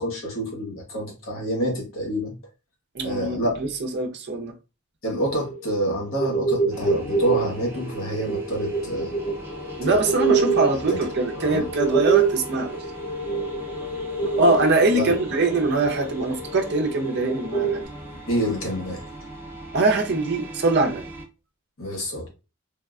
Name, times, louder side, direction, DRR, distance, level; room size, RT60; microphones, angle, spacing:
voice 1, 0.0-2.3 3.0-3.5 5.0-9.1 9.8-10.0 10.7-11.0 11.3-11.6 14.9-15.2 18.3-19.0 21.8-22.3, right 1 dB, 60° left, 1.0 m, -27 dB
voice 2, 2.9-3.7 3.9-4.5 9.8-12.8 14.4-17.8 19.7-21.0, right 2 dB, 50° right, 0.6 m, -22 dB
sound 1, 5.4-17.8, right 4 dB, 40° left, 0.3 m, -27 dB
sound 2, 6.7-21.2, right 2 dB, 10° right, 0.6 m, -40 dB
3.4 x 2.2 x 2.3 m
head